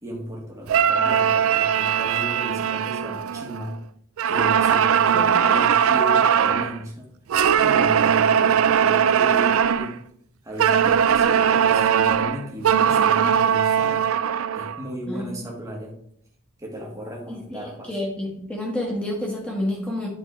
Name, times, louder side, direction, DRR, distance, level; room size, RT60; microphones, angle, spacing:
voice 1, 0.0-3.7 4.3-7.1 7.5-10.0 10.4-14.0 14.5-15.9 16.6-18.0, equal, 15° right, -2 dB, 1.5 m, -35 dB
sound 1, 0.7-3.8 4.2-6.8 7.3-9.9 10.6-14.8, right 8 dB, 70° right, 0.4 m, -20 dB
voice 2, 15.1-15.5 17.3-20.1, left 1 dB, 5° left, -2 dB, 1.8 m, -29 dB
9.8 x 4.0 x 4.3 m, 0.67 s
head